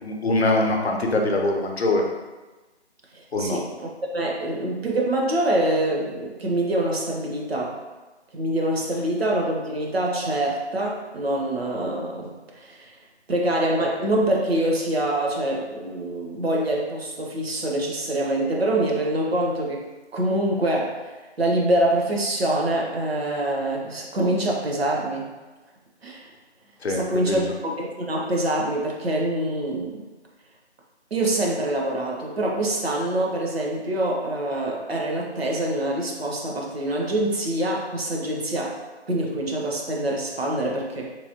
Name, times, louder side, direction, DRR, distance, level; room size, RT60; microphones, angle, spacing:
voice 1, 0.0-2.0 3.3-3.6 26.8-27.4, left 2 dB, 70° left, 2 dB, 0.6 m, -23 dB
voice 2, 3.1-7.8 8.3-12.9 13.3-19.8 20.1-21.0 21.4-25.3 26.0-26.3 26.9-30.0 31.1-38.8 39.1-41.2, right 1 dB, 60° right, -1 dB, 0.7 m, -25 dB
3.2 x 2.7 x 2.6 m, 1.2 s
figure-of-eight pair, 165°, 34 cm